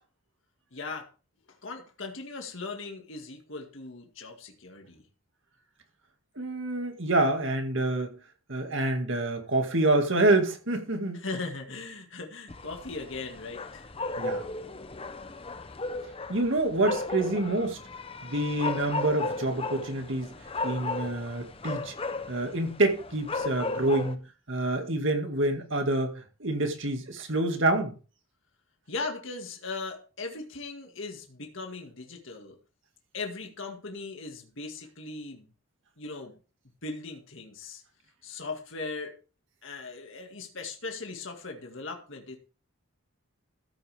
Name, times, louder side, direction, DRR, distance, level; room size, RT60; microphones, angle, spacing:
voice 1, 0.7-1.1 1.6-5.0 11.1-13.9 28.9-32.6 33.1-35.5 36.0-36.4 36.8-37.8 38.2-39.1 39.6-42.4, left 3 dB, 60° left, 2.0 m, -38 dB
voice 2, 6.4-8.1 8.5-11.2 14.2-14.4 16.3-17.8 18.2-20.3 20.6-21.9 22.3-24.2 24.5-27.9, right 2 dB, 60° right, 2.1 m, -27 dB
sound 1, 12.5-24.2, left 3 dB, 25° left, 0.7 m, -35 dB
14.0 x 8.2 x 3.5 m
head